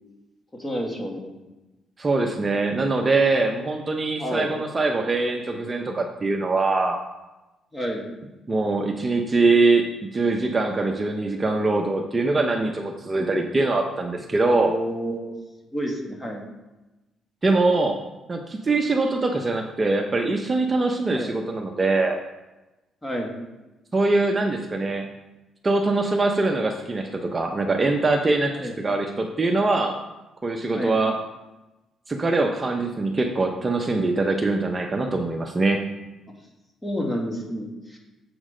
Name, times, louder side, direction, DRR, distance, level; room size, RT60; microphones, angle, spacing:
voice 1, 0.5-1.4 4.2-4.5 7.7-8.0 14.5-15.4 15.7-16.4 21.1-21.3 23.0-23.4 28.5-28.8 30.7-30.9 36.8-38.0, equal, 15° left, 0 dB, 2.0 m, -29 dB
voice 2, 2.0-7.0 8.5-14.7 17.4-18.0 18.3-22.2 23.9-25.1 25.6-30.0 30.4-31.2 32.1-35.8, right 3 dB, 25° right, 2 dB, 0.8 m, -23 dB
7.3 x 6.2 x 5.0 m, 1.1 s
cardioid pair, 90°, 0 cm